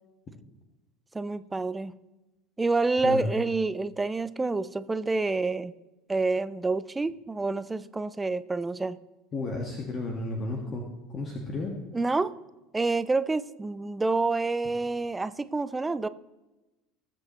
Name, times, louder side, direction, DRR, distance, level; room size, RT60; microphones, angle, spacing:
voice 1, 1.1-1.9 2.6-5.7 6.1-9.0 11.9-12.4 12.7-16.1, right 3 dB, 15° right, 15 dB, 0.5 m, -28 dB
voice 2, 9.3-11.8, left 2 dB, 35° left, 1 dB, 1.8 m, -33 dB
20.0 x 7.6 x 3.2 m, 1.0 s
figure-of-eight pair, 70°, 0 cm